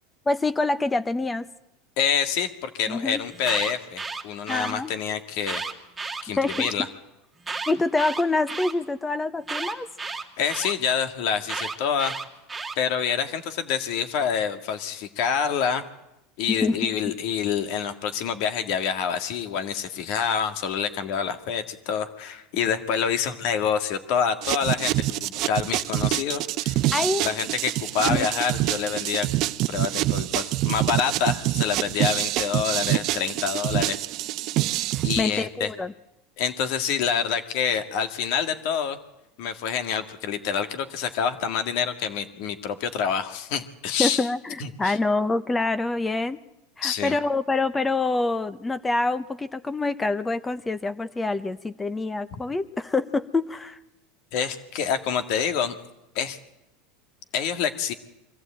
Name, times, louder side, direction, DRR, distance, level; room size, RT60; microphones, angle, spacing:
voice 1, 0.3-1.5 2.9-3.2 4.5-4.9 6.4-6.7 7.7-9.9 16.5-16.9 26.9-27.3 28.1-28.3 34.9-35.9 44.0-46.4 46.8-53.8, left 3 dB, 15° left, 14 dB, 0.8 m, -26 dB
voice 2, 2.0-5.6 6.2-6.9 10.4-12.2 12.8-15.8 16.4-26.8 27.2-29.3 29.7-34.0 35.0-35.7 36.4-39.0 39.4-44.3 44.6-45.0 46.8-47.2 54.3-55.8 56.2-56.4 57.3-57.9, left 7 dB, 65° left, 9 dB, 1.9 m, -27 dB
Alarm, 3.3-4.7 5.4-6.7 7.4-8.7 9.5-10.7 11.5-12.8, right 4 dB, 15° right, 2.3 m, -32 dB
sound 1, 24.4-35.2, right 16 dB, 55° right, 0.7 m, -26 dB
23.0 x 14.5 x 8.9 m, 0.94 s
supercardioid pair, 105°, 0 cm